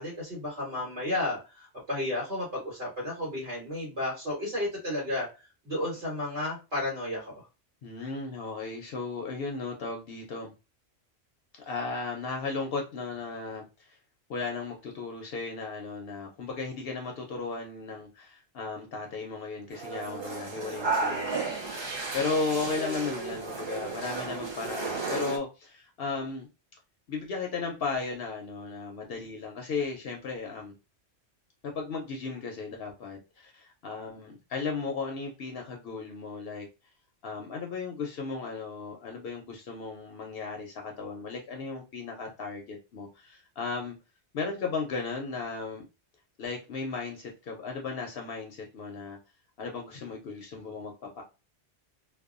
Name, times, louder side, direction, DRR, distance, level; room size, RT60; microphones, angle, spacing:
voice 1, 0.0-5.3 5.6-7.4, left 1 dB, 65° right, -6 dB, 1.4 m, -32 dB
voice 2, 7.8-10.5 11.6-14.0 14.3-26.5 27.1-30.7 31.6-36.7 37.2-44.0 44.3-45.8 46.4-49.2 49.6-51.2, left 4 dB, 65° left, 2 dB, 0.7 m, -35 dB
sound 1, 19.7-25.4, right 3 dB, 35° right, 0.4 m, -33 dB
2.7 x 2.1 x 2.4 m, 0.29 s
omnidirectional pair, 1.1 m